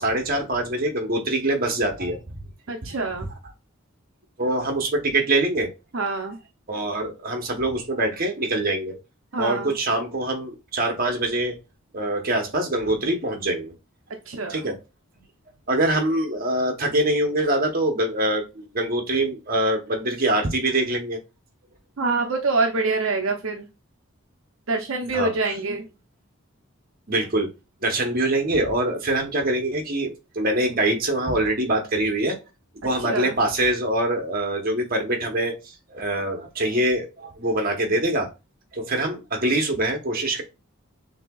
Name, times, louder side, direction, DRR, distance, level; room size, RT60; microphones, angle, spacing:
voice 1, 0.0-2.4 4.4-5.7 6.7-9.0 9.3-11.6 11.9-13.7 14.5-14.8 15.7-21.2 25.1-25.3 27.1-27.5 27.8-32.4 32.8-35.6 35.9-38.3 38.7-40.4, right 1 dB, 40° right, 3 dB, 1.0 m, -24 dB
voice 2, 2.7-3.3 5.9-6.4 9.3-9.7 14.3-14.7 22.0-23.7 24.7-25.8 33.0-33.3, right 3 dB, 70° right, 3 dB, 0.6 m, -25 dB
6.4 x 2.8 x 2.3 m, 0.27 s
head